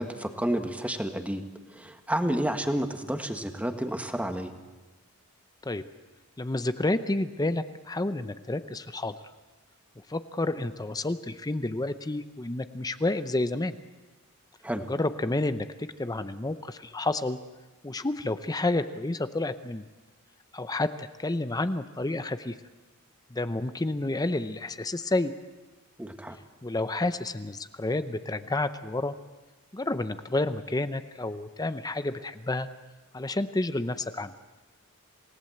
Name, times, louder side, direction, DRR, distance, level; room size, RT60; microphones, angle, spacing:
voice 1, 0.0-1.4 1.7-4.5 14.6-14.9 26.0-26.4, right 1 dB, 5° right, 6 dB, 1.5 m, -30 dB
voice 2, 6.4-9.1 10.1-13.7 14.8-17.4 17.8-19.9 20.5-22.6 23.3-25.3 26.6-29.1 29.7-32.7 33.1-34.3, left 2 dB, 15° left, 11 dB, 0.7 m, -30 dB
27.5 x 18.0 x 7.9 m, 1.2 s
head